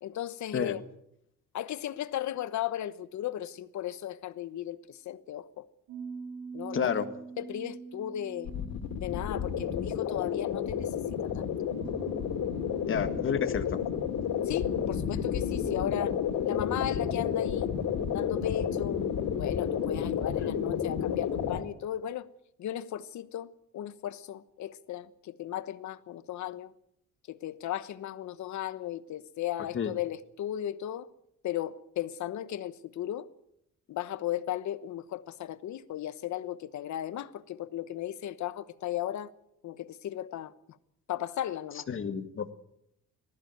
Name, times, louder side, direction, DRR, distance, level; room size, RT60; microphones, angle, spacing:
voice 1, 0.0-0.8 1.5-5.7 6.5-7.1 7.4-8.5 8.9-11.5 13.7-13.8 14.5-16.2 16.4-17.7 18.1-19.0 19.4-22.3 22.6-23.5 23.7-26.7 27.3-31.1 31.4-33.3 33.9-39.3 39.6-40.5 41.1-41.9, left 12 dB, 65° left, 1.2 m, -36 dB
sound 1, 5.9-10.5 11.8-17.1, right 5 dB, 80° right, 5.0 m, -47 dB
voice 2, 6.7-7.0 12.9-13.8 20.4-20.5 29.7-29.9 41.9-42.5, left 7 dB, 40° left, 1.8 m, -30 dB
sound 2, 8.4-21.6, left 8 dB, 90° left, 2.7 m, -31 dB
19.5 x 14.5 x 9.3 m
cardioid pair, 125°, 31 cm